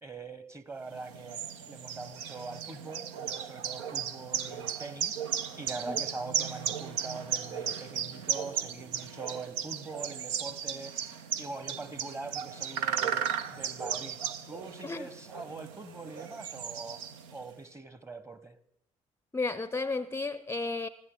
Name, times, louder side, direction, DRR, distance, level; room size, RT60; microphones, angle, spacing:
voice 1, 0.0-5.3 5.6-11.0 11.4-13.3 13.5-14.2 14.5-17.0 17.3-18.6, right 3 dB, 20° right, 1.1 m, -43 dB
sound 1, 0.9-17.5, right 8 dB, 75° right, 0.6 m, -36 dB
voice 2, 19.3-20.9, left 3 dB, 15° left, 0.6 m, -33 dB
20.0 x 15.5 x 3.8 m
figure-of-eight pair, 45°, 16 cm